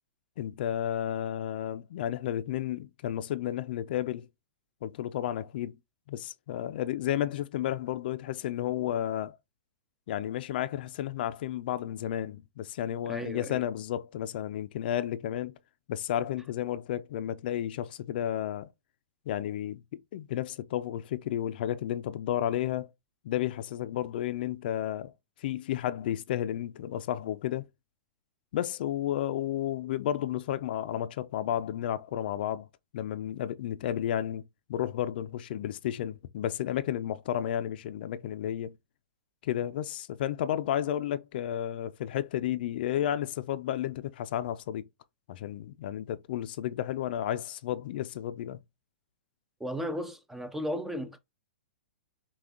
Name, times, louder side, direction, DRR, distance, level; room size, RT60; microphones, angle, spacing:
voice 1, 0.4-4.3 4.8-5.8 6.1-9.4 10.1-15.6 15.9-18.7 19.3-19.8 20.1-22.9 23.2-25.1 25.4-27.7 28.5-32.7 32.9-34.4 34.7-38.7 39.4-44.9 45.3-48.6, left 11 dB, 55° left, 0.5 m, -32 dB
voice 2, 13.1-13.6 49.6-51.2, equal, 5° right, 0.5 m, -35 dB
5.9 x 2.4 x 3.6 m
hypercardioid pair, 125°, 6 cm